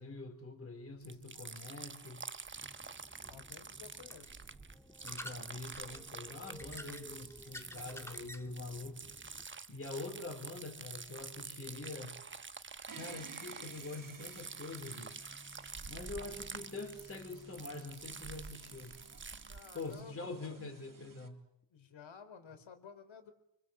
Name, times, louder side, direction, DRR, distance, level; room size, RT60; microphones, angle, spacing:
voice 1, 0.0-2.2 5.0-9.0 9.7-12.2 13.0-15.3 15.9-19.0 19.7-21.4, left 3 dB, 30° left, 4 dB, 4.0 m, -45 dB
sound 1, 1.0-20.0, right 4 dB, 25° right, 1.0 m, -48 dB
sound 2, 2.5-9.4, left 1 dB, 5° left, 1.7 m, -52 dB
voice 2, 3.3-4.5 19.5-20.8 21.7-23.3, left 6 dB, 85° left, 9 dB, 4.4 m, -54 dB
sound 3, 12.9-21.3, right 4 dB, 45° right, 3.5 m, -55 dB
30.0 x 25.0 x 7.8 m, 0.78 s
wide cardioid pair, 165°, 45 cm